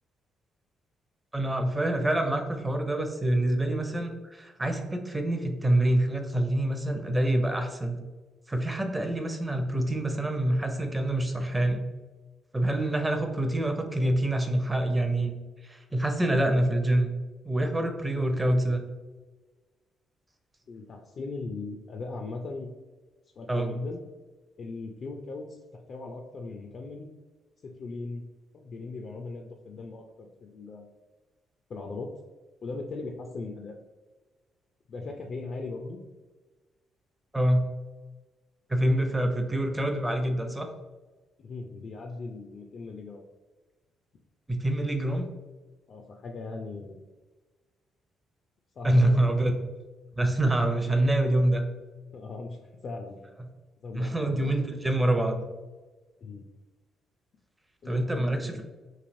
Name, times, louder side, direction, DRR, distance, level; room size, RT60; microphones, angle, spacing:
voice 1, 1.3-8.0 8.5-11.8 12.5-15.3 15.6-17.1 17.4-18.8 23.5-23.7 37.3-37.6 38.7-40.7 44.5-45.3 48.8-49.5 50.1-51.6 53.9-55.4 57.9-58.6, right 1 dB, 15° right, 5 dB, 0.5 m, -26 dB
voice 2, 20.7-22.7 23.4-24.0 24.6-27.1 27.6-28.2 28.5-30.9 31.7-32.1 32.6-33.8 34.9-36.0 39.2-39.4 41.4-43.2 45.9-47.1 48.8-49.5 50.9-51.0 52.1-53.2 53.8-54.5 56.2-56.5 57.8-58.6, left 3 dB, 55° left, 2 dB, 0.3 m, -39 dB
3.2 x 2.5 x 2.5 m, 1.3 s
cardioid pair, 90°, 0 cm